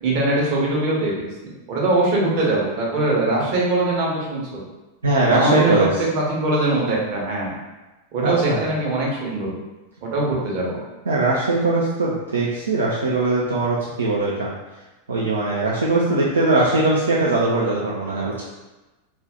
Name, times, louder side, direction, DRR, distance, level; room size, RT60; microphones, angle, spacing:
voice 1, 0.0-1.2 1.7-4.4 5.3-7.5 8.1-9.5 10.0-10.8, right 2 dB, 45° right, -3 dB, 0.9 m, -21 dB
voice 2, 5.0-6.0 8.2-8.6 11.1-14.5 15.1-18.4, right 2 dB, 75° right, -5 dB, 0.4 m, -20 dB
2.6 x 2.3 x 3.5 m, 1.1 s
figure-of-eight pair, 90°, 0 cm